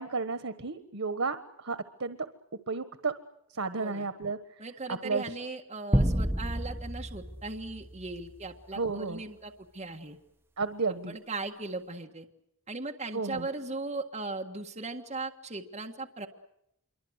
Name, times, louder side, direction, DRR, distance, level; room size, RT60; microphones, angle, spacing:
voice 1, 0.0-2.2 2.7-3.1 3.5-4.4 4.9-5.2 6.0-6.2 8.8-9.2 10.6-11.1 13.1-13.5, right 4 dB, 85° right, 11 dB, 1.4 m, -32 dB
voice 2, 4.6-10.2 11.1-12.3 12.7-16.3, right 3 dB, 35° right, 3 dB, 1.7 m, -38 dB
sound 1, 5.9-8.5, equal, 10° right, 1.2 m, -30 dB
26.5 x 24.0 x 8.1 m, 0.78 s
head